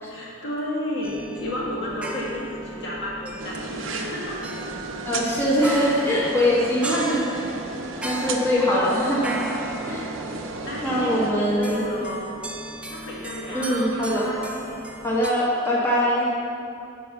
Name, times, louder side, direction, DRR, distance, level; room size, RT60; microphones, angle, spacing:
voice 1, 0.1-4.4 8.1-8.4 8.7-9.0 10.4-12.3 12.9-14.8, left 1 dB, 60° left, -6 dB, 1.9 m, -32 dB
sound 1, 1.0-15.3, right 1 dB, 5° right, 0.4 m, -36 dB
sound 2, 3.4-11.3, right 3 dB, 70° right, 0.6 m, -34 dB
voice 2, 5.0-7.5 8.0-9.4 9.9-10.0 10.8-11.8 13.5-14.2 15.0-16.3, equal, 10° left, -7 dB, 1.1 m, -22 dB
7.5 x 4.5 x 6.6 m, 2.8 s
head